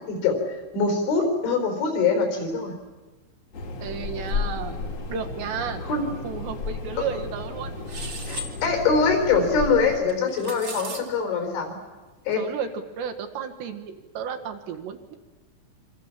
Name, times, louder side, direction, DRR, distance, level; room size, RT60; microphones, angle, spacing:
voice 1, 0.0-2.8 5.9-6.1 8.3-11.7 12.3-12.4, left 4 dB, 70° left, 5 dB, 6.9 m, -23 dB
sound 1, 3.5-10.0, left 3 dB, 45° left, 2.7 m, -33 dB
voice 2, 3.8-4.8 5.1-5.8 6.2-7.9 12.4-12.7 13.0-15.1, right 7 dB, 70° right, 6 dB, 3.5 m, -33 dB
sound 2, 7.9-8.5 10.1-11.0, right 1 dB, 40° right, 1.8 m, -36 dB
27.0 x 24.5 x 7.4 m, 1.2 s
omnidirectional pair, 5.5 m